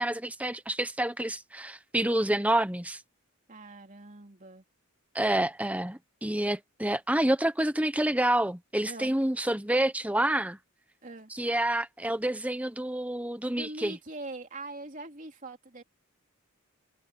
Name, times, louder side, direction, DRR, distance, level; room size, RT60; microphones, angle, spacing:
voice 1, 0.0-3.0 5.1-10.6 11.3-14.0, right 1 dB, 5° right, 1.0 m, -28 dB
voice 2, 3.5-4.6 8.8-9.1 11.0-11.3 13.5-15.8, right 2 dB, 40° right, 3.5 m, -42 dB
head